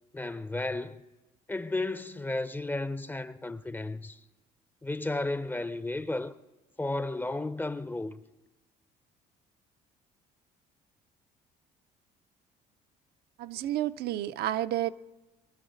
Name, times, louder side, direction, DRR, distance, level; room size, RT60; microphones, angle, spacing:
voice 1, 0.1-1.0 1.5-4.2 4.8-6.3 6.8-8.2, left 2 dB, 10° left, 0.5 m, -33 dB
voice 2, 13.4-14.9, right 13 dB, 70° right, 0.5 m, -30 dB
23.0 x 12.5 x 5.1 m
cardioid pair, 110°, 17 cm